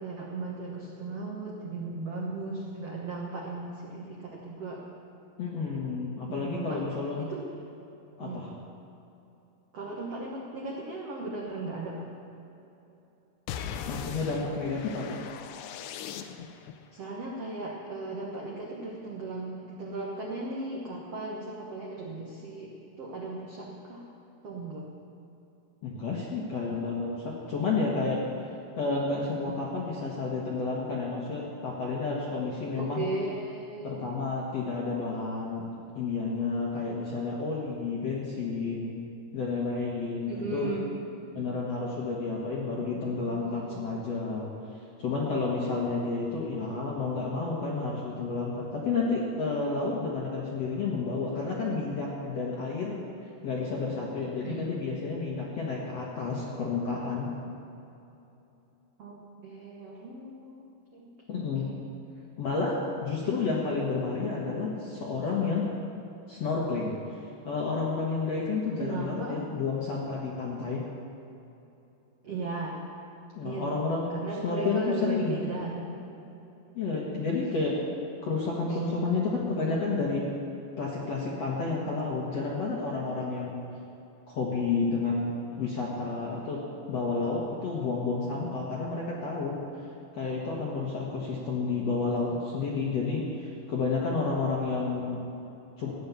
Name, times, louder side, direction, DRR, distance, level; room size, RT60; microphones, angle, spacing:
voice 1, 0.0-4.8 6.3-6.8 7.3-7.5 8.2-8.5 9.7-12.1 16.9-24.0 24.4-24.9 29.4-29.7 32.7-34.1 40.3-40.9 41.3-41.6 42.8-43.9 54.4-54.7 59.0-61.8 68.8-69.4 72.2-72.8 73.4-76.0 78.7-78.8 79.6-79.8 95.4-95.6, right 3 dB, 70° right, -2 dB, 1.4 m, -37 dB
voice 2, 5.4-7.3 8.2-8.5 13.9-15.2 25.8-28.2 28.8-33.0 33.8-35.6 35.9-39.0 39.3-40.8 41.3-44.5 45.0-53.0 53.4-57.3 61.3-61.7 62.4-65.7 66.3-66.9 67.4-70.8 73.4-75.4 76.7-77.8 78.2-80.2 80.8-83.6 84.3-86.6 86.9-89.6 90.1-95.2 95.8-95.9, left 4 dB, 60° left, -4 dB, 1.7 m, -30 dB
sound 1, 13.5-16.7, left 8 dB, 90° left, 2.8 m, -39 dB
14.0 x 9.6 x 7.1 m, 2.9 s
omnidirectional pair, 4.8 m